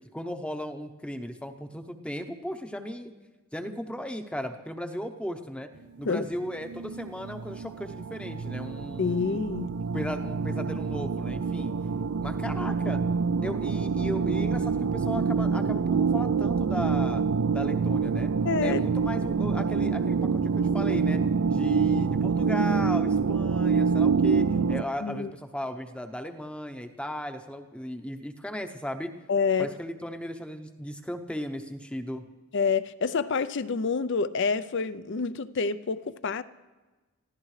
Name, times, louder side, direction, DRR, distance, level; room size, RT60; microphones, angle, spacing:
voice 1, 0.1-3.1 3.5-5.7 6.0-9.4 9.9-11.7 12.2-13.0 13.4-17.2 17.5-18.3 18.6-21.2 21.5-29.1 29.6-32.2, equal, 5° left, 0.8 m, -36 dB
sound 1, 6.4-24.8, right 5 dB, 90° right, 0.4 m, -26 dB
voice 2, 9.0-9.7 18.4-18.8 25.0-25.3 29.3-29.7 32.5-36.4, left 5 dB, 55° left, 0.5 m, -27 dB
25.5 x 15.0 x 3.3 m
head